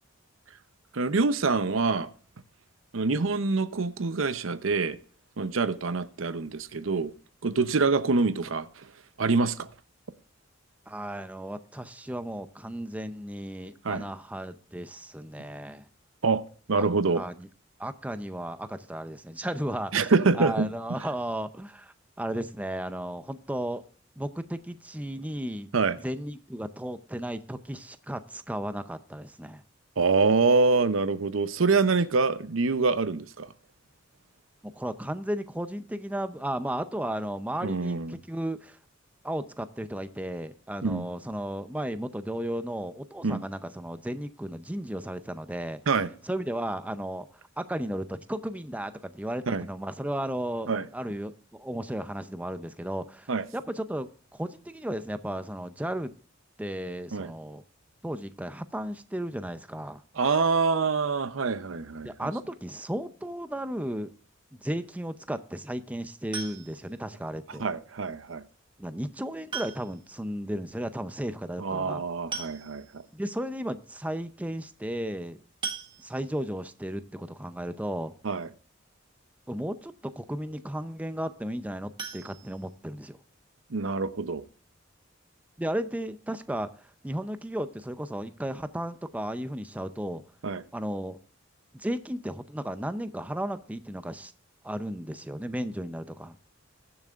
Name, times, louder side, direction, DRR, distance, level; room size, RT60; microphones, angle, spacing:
voice 1, 0.9-2.1 2.9-5.0 5.4-7.1 7.4-8.9 9.2-9.7 13.8-14.1 16.2-16.4 16.7-17.2 19.9-20.7 25.7-26.0 30.0-33.5 37.6-38.1 40.8-41.0 43.2-43.4 45.9-46.1 49.5-49.7 50.7-50.8 53.3-53.4 57.1-57.3 60.2-62.3 67.6-68.4 71.6-73.0 78.2-78.5 83.7-84.4 90.4-90.6, right 4 dB, 85° right, 0.7 m, -25 dB
voice 2, 10.9-15.9 16.8-16.9 17.1-17.5 17.8-23.8 24.2-25.7 26.0-29.6 34.6-38.8 39.2-45.8 46.2-47.3 47.6-56.1 56.6-57.6 58.0-60.0 62.0-64.1 64.5-67.7 68.8-72.0 73.1-75.4 76.0-78.1 79.5-83.2 85.6-90.2 90.7-91.2 91.7-94.3 94.6-96.4, right 1 dB, 10° right, 0.6 m, -34 dB
sound 1, 66.3-67.0 68.4-68.5 69.5-70.1 70.4-70.5 70.8-70.9 71.9-72.0 72.3-73.0 73.6-73.7 74.0-74.2 75.6-76.5 81.9-83.1 83.5-83.6 84.0-84.1 84.5-84.6, right 5 dB, 25° right, 1.5 m, -38 dB
21.0 x 7.1 x 2.4 m
head